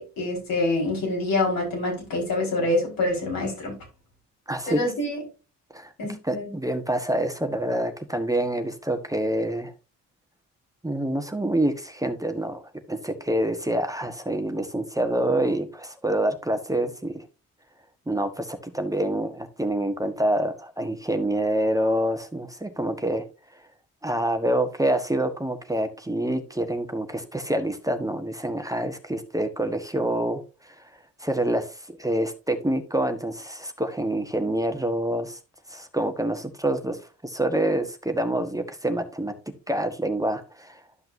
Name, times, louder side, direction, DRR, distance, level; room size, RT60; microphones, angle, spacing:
voice 1, 0.0-3.7 4.7-5.2 6.0-6.5, left 2 dB, 80° left, -1 dB, 4.8 m, -26 dB
voice 2, 4.5-4.8 5.7-5.9 6.2-9.7 10.8-17.2 18.1-23.2 23.5-23.6 24.0-30.9 31.2-35.4 35.7-39.3 39.7-40.8, right 1 dB, 10° right, 7 dB, 1.3 m, -27 dB
12.5 x 5.7 x 2.7 m, 0.30 s
supercardioid pair, 55°, 34 cm